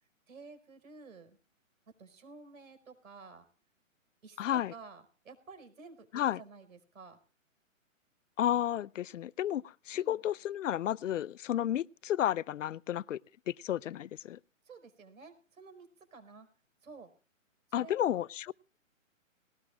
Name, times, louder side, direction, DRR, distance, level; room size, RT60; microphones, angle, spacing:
voice 1, 0.3-1.4 2.0-3.5 4.2-7.2 9.9-10.2 11.5-11.8 14.6-16.5 16.8-17.1 17.7-18.2, right 4 dB, 75° right, 5.0 m, -52 dB
voice 2, 4.4-4.7 6.1-6.4 8.4-13.2 13.5-14.4 17.7-18.5, left 11 dB, 65° left, 0.6 m, -32 dB
20.0 x 18.5 x 2.4 m
hypercardioid pair, 155°, 40 cm